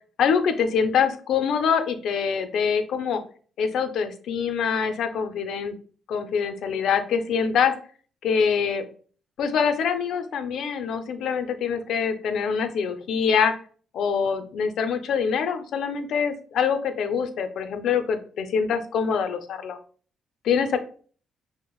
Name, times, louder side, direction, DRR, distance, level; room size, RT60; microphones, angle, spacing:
voice 1, 0.2-3.2 3.6-5.7 6.1-7.7 8.2-8.8 9.4-13.5 13.9-19.8 20.4-20.8, left 6 dB, 75° left, 9 dB, 0.5 m, -24 dB
5.6 x 2.1 x 2.3 m, 0.42 s
cardioid pair, 90°, 0 cm